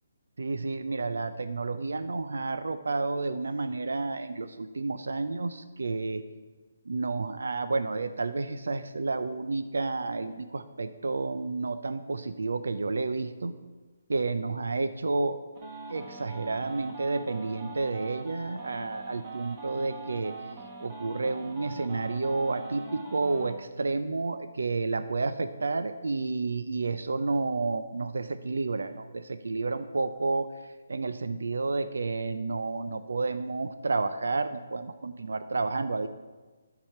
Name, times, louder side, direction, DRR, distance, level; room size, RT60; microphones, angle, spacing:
voice 1, 0.4-6.2 6.9-13.5 14.1-15.4 15.9-20.3 20.8-30.5 30.9-36.1, right 3 dB, 85° right, 10 dB, 0.6 m, -30 dB
sound 1, 15.6-23.5, right 3 dB, 20° right, 1.1 m, -42 dB
12.5 x 4.9 x 5.8 m, 1.3 s
hypercardioid pair, 170°, 0 cm